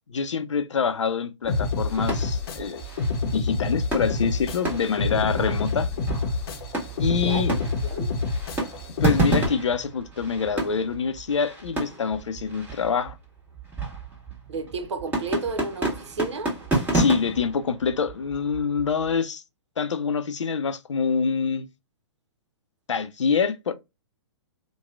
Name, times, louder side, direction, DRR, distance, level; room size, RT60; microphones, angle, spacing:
voice 1, 0.1-2.8 3.2-5.9 7.0-7.5 9.0-13.2 16.9-19.4 19.8-21.7 22.9-23.7, left 5 dB, 90° left, 0.5 m, -25 dB
sound 1, 1.4-19.2, right 2 dB, 10° right, 1.3 m, -31 dB
sound 2, 1.5-9.5, left 3 dB, 55° left, 0.7 m, -28 dB
voice 2, 5.3-5.6 7.1-8.1 14.5-16.5, right 3 dB, 75° right, 0.8 m, -32 dB
2.9 x 2.2 x 2.3 m
hypercardioid pair, 130°, 15 cm